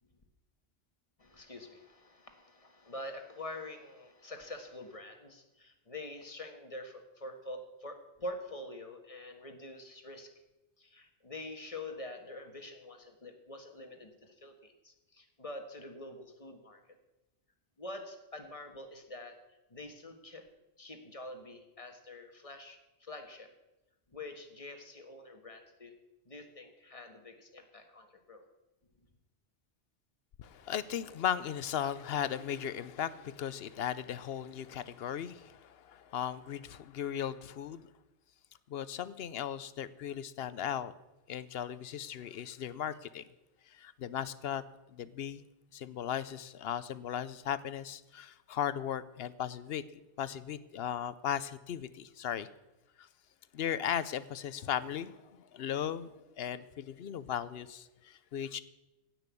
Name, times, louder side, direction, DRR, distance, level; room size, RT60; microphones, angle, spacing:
voice 1, 1.2-10.3 10.8-17.0 17.8-19.4 19.7-20.4 20.8-23.5 24.1-25.9 26.2-28.4, left 1 dB, 30° left, 5 dB, 1.6 m, -46 dB
voice 2, 30.4-37.9 38.7-40.9 41.3-43.3 43.7-44.6 44.9-45.4 45.7-52.5 53.0-53.1 53.5-58.6, left 9 dB, 65° left, 16 dB, 0.8 m, -37 dB
16.5 x 6.1 x 8.3 m, 1.0 s
omnidirectional pair, 1.2 m